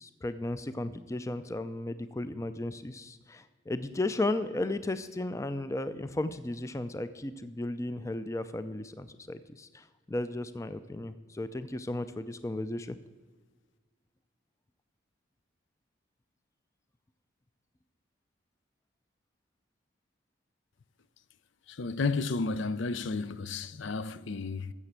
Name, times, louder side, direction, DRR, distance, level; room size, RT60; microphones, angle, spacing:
voice 1, 0.0-13.0, left 2 dB, 15° left, 0.4 m, -35 dB
voice 2, 21.7-24.7, left 3 dB, 70° left, 0.5 m, -32 dB
14.5 x 6.8 x 7.4 m
head